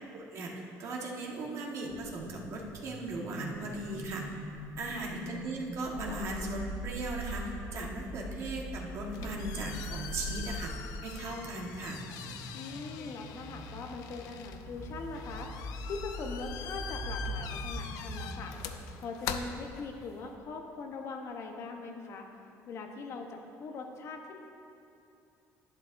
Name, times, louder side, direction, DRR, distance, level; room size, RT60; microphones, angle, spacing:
voice 1, 0.1-0.5 0.8-4.2 4.8-10.7 11.0-12.0, right 2 dB, 55° right, -1 dB, 1.4 m, -38 dB
sound 1, 1.9-18.5, equal, 5° left, 1.6 m, -42 dB
sound 2, 8.9-20.3, left 7 dB, 80° left, 0.5 m, -43 dB
voice 2, 12.5-15.5 15.8-18.5 19.0-22.3 22.7-24.4, left 4 dB, 50° left, 3 dB, 0.9 m, -41 dB
11.0 x 10.5 x 2.6 m, 2.7 s
cardioid pair, 135°, 6 cm